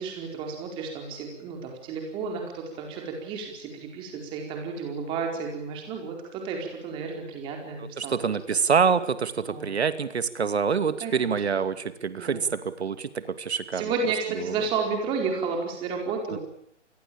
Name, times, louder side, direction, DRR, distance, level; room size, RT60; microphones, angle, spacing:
voice 1, 0.0-8.2 9.5-9.8 11.0-11.4 12.2-12.5 13.7-16.4, right 5 dB, 15° right, 2 dB, 4.5 m, -32 dB
voice 2, 7.8-13.9 14.4-14.5 16.3-16.4, right 6 dB, 60° right, 12 dB, 2.5 m, -26 dB
28.5 x 21.5 x 8.9 m, 0.70 s
hypercardioid pair, 160°, 37 cm